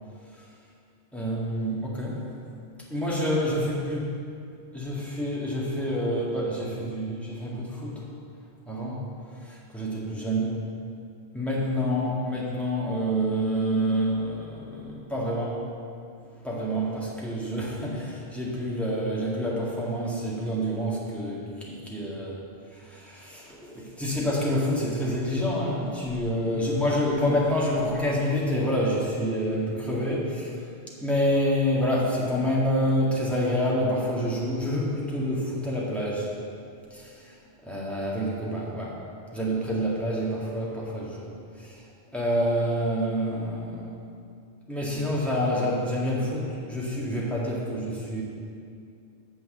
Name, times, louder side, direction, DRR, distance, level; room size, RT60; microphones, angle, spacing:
voice 1, 1.1-2.2 2.9-4.1 4.7-8.1 8.7-9.1 9.4-10.6 11.3-15.6 16.4-22.3 22.7-30.6 31.0-36.3 36.9-37.4 37.6-39.0 39.3-41.3 41.6-41.8 42.1-44.0 44.7-48.2, equal, ahead, -6 dB, 1.9 m, -27 dB
7.7 x 6.4 x 7.6 m, 2.4 s
omnidirectional pair, 1.2 m